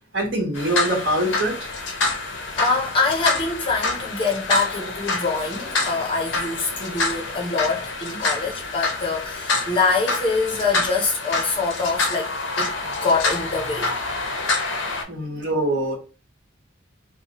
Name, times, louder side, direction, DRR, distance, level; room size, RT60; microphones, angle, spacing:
voice 1, 0.1-1.6 15.1-15.9, right 1 dB, 65° right, 1.2 m, -23 dB
sound 1, 0.5-15.0, left 3 dB, 75° left, 0.6 m, -27 dB
voice 2, 2.6-12.3 12.6-13.9, left 4 dB, 25° left, 0.6 m, -24 dB
2.8 x 2.1 x 2.8 m
head